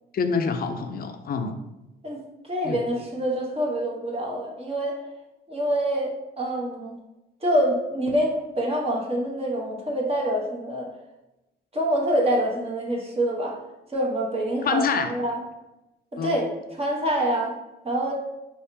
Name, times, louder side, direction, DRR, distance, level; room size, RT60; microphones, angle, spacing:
voice 1, 0.1-1.5 2.6-2.8 14.6-15.1 16.2-16.3, left 5 dB, 50° left, 7 dB, 0.5 m, -26 dB
voice 2, 2.0-5.0 5.5-6.1 6.4-7.0 7.4-10.9 11.7-13.6 13.9-15.4 16.1-16.4 16.7-17.5 17.8-18.1, right 1 dB, 30° right, -2 dB, 1.2 m, -26 dB
4.5 x 3.4 x 2.8 m, 0.98 s
cardioid pair, 90°, 20 cm